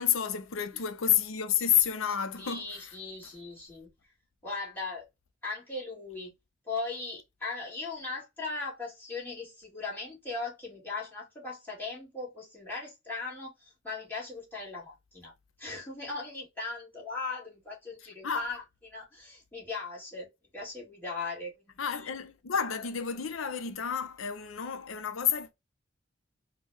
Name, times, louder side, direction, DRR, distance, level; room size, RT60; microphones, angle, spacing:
voice 1, 0.0-2.9 18.2-18.5 21.8-25.5, left 8 dB, 90° left, 0.6 m, -30 dB
voice 2, 2.4-3.9 4.4-5.0 5.4-6.3 6.7-15.3 15.6-18.6 18.9-22.1, left 3 dB, 10° left, 1.9 m, -38 dB
4.4 x 2.2 x 3.4 m
head